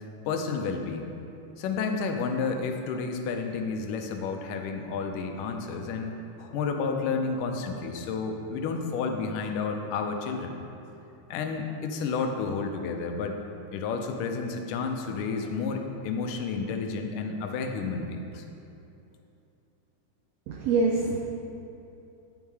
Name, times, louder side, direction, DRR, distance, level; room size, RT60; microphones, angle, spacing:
voice 1, 0.3-1.1 1.6-6.1 6.4-10.5 11.3-13.4 13.7-18.4, left 4 dB, 90° left, 4 dB, 2.3 m, -31 dB
voice 2, 20.5-21.2, right 3 dB, 85° right, 0 dB, 1.4 m, -25 dB
10.0 x 5.6 x 4.7 m, 2.8 s
omnidirectional pair, 3.6 m